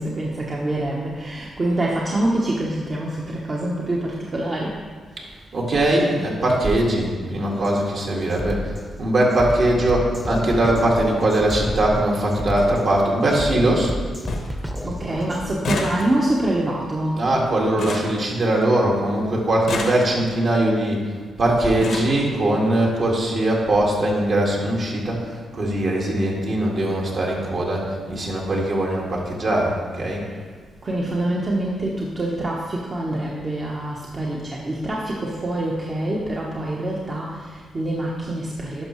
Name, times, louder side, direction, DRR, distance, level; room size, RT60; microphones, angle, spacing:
voice 1, 0.0-4.8 14.8-17.2 30.3-30.4 30.8-38.8, right 1 dB, 35° right, -4 dB, 1.0 m, -25 dB
voice 2, 5.5-13.9 17.2-21.1 21.4-30.2, right 1 dB, 60° right, -3 dB, 1.9 m, -21 dB
Drum kit, 7.6-7.8 8.3-15.5, equal, ahead, 0.8 m, -31 dB
sound 1, 12.5-12.7 13.2-13.7 13.9-14.0 14.3-14.6 14.9-18.9 19.5-20.5 21.3-21.4 21.6-22.2 23.2-23.3 23.6-23.8 24.1-24.2, left 3 dB, 70° left, 1.1 m, -31 dB
11.0 x 5.5 x 3.1 m, 1.5 s
cardioid pair, 65°, 0 cm